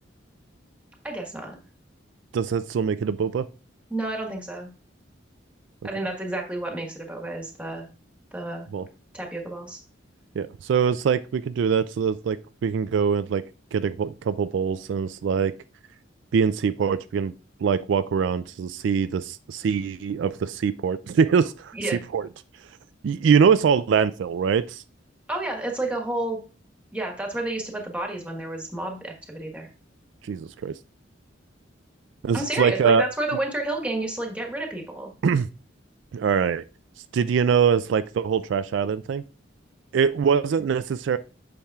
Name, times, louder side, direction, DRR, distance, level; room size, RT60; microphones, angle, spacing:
voice 1, 1.0-1.5 3.9-4.7 5.8-7.9 8.3-8.7 9.1-9.8 21.7-22.0 25.3-26.4 26.9-29.7 32.3-35.1, right 2 dB, 5° right, 1 dB, 1.4 m, -30 dB
voice 2, 2.3-3.5 8.7-8.8 10.4-13.4 13.7-15.5 16.3-17.3 17.6-21.7 22.1-22.3 23.0-24.8 30.2-30.7 32.2-33.0 35.2-35.5 36.1-36.6 37.1-39.2 39.9-41.2, right 6 dB, 70° right, 13 dB, 0.3 m, -23 dB
8.5 x 5.8 x 2.4 m, 0.35 s
head